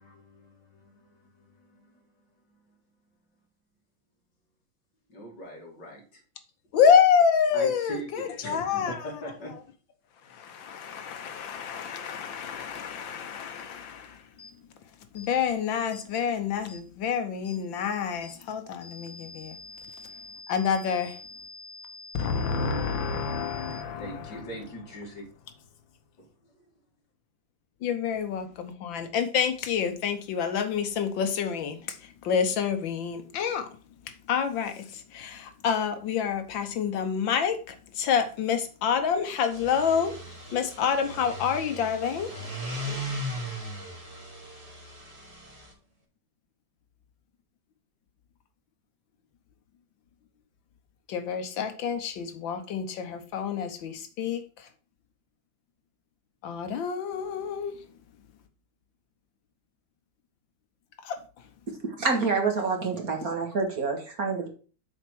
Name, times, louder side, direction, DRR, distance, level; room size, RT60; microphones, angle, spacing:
voice 1, 0.0-2.0 2.5-2.8 5.1-6.2 7.5-9.5 22.3-22.6 23.0-23.4 23.9-25.3 26.2-26.7, right 1 dB, 60° left, 3.1 m, -42 dB
voice 2, 6.7-9.0 10.3-14.2 15.1-19.6 20.5-21.2 22.1-24.4 27.8-33.7 34.3-40.2 40.5-42.4 51.1-54.7 56.4-57.8 61.0-61.2, left 7 dB, 80° left, 1.6 m, -28 dB
sound 1, 14.4-14.5 15.2-15.3 15.9-16.1 16.7-16.8 17.4-17.6 18.2-18.4 18.8-23.8, left 3 dB, 15° left, 2.6 m, -46 dB
sound 2, 39.4-45.7, equal, 20° right, 2.0 m, -38 dB
voice 3, 61.8-64.5, right 4 dB, 50° right, 1.9 m, -27 dB
7.1 x 4.5 x 6.1 m
omnidirectional pair, 2.1 m